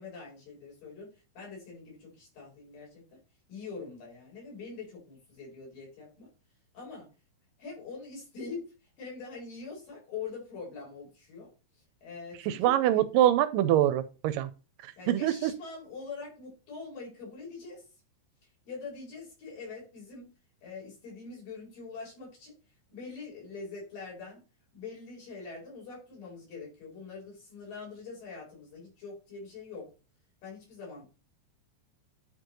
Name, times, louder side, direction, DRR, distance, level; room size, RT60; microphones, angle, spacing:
voice 1, 0.0-3.2 3.5-6.3 6.7-7.1 7.6-11.5 12.0-13.0 15.0-17.8 18.7-20.3 20.6-22.5 22.9-24.4 24.7-29.9 30.4-31.1, left 4 dB, 75° left, 5.8 m, -44 dB
voice 2, 12.5-14.5 15.1-15.5, right 12 dB, 85° right, 2.2 m, -24 dB
9.8 x 4.5 x 3.1 m
omnidirectional pair, 3.9 m